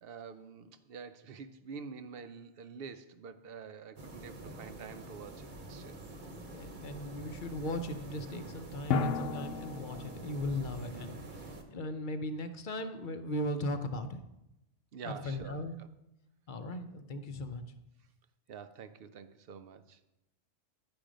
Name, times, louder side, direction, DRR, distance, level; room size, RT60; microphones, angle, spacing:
voice 1, 0.0-6.0 10.9-11.2 14.9-15.9 18.5-20.0, right 6 dB, 60° right, 11 dB, 0.7 m, -47 dB
sound 1, 4.0-11.6, right 1 dB, 40° right, 1.1 m, -46 dB
Drum, 5.6-5.7 8.9-10.7, left 5 dB, 80° left, 1.1 m, -34 dB
voice 2, 6.3-14.2 15.0-15.7 16.5-17.6, left 1 dB, 50° left, 8 dB, 0.7 m, -38 dB
10.5 x 6.0 x 5.1 m, 0.90 s
omnidirectional pair, 1.3 m